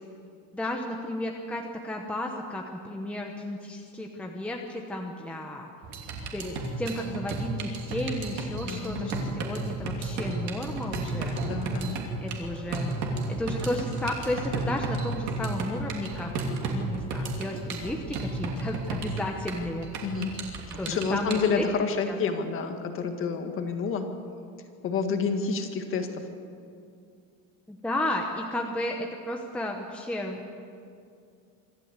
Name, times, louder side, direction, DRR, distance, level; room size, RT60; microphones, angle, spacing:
voice 1, 0.5-5.7 6.3-11.4 12.2-12.9 13.3-19.9 20.8-21.7 22.1-22.2 27.7-30.6, left 1 dB, 5° left, 1 dB, 1.0 m, -33 dB
sound 1, 5.8-21.4, right 3 dB, 45° right, 2.8 m, -33 dB
voice 2, 8.6-9.5 11.4-12.0 20.0-20.3 20.9-24.1 24.8-26.2, left 5 dB, 30° left, 5 dB, 1.9 m, -29 dB
25.5 x 13.0 x 8.2 m, 2.4 s
cardioid pair, 165°, 39 cm